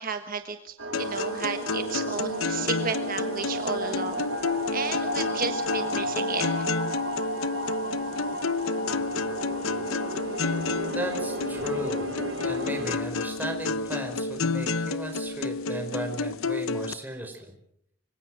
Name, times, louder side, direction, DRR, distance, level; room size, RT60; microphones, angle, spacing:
voice 1, 0.0-4.2 4.7-6.6, right 5 dB, 45° right, 7 dB, 1.4 m, -33 dB
sound 1, 0.8-13.0, equal, 60° right, 2.3 m, -33 dB
sound 2, 0.9-16.9, left 3 dB, 85° left, 0.9 m, -30 dB
voice 2, 10.8-12.1 12.4-17.5, right 1 dB, 10° right, 4 dB, 4.9 m, -35 dB
26.0 x 24.5 x 6.3 m, 0.71 s
head